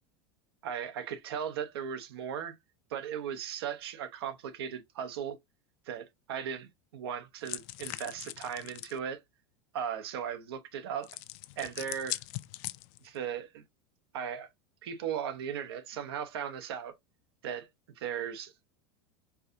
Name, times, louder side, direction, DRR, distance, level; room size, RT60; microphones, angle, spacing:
voice 1, 0.6-2.5 2.9-5.4 5.9-9.2 9.7-11.2 11.6-12.2 13.0-13.6 14.1-14.5 14.8-16.9 17.4-17.7 18.0-18.7, right 8 dB, 90° right, 0.8 m, -37 dB
sound 1, 7.4-9.0 11.0-13.2, left 18 dB, 55° left, 0.4 m, -41 dB
4.6 x 2.6 x 2.5 m
supercardioid pair, 135°, 13 cm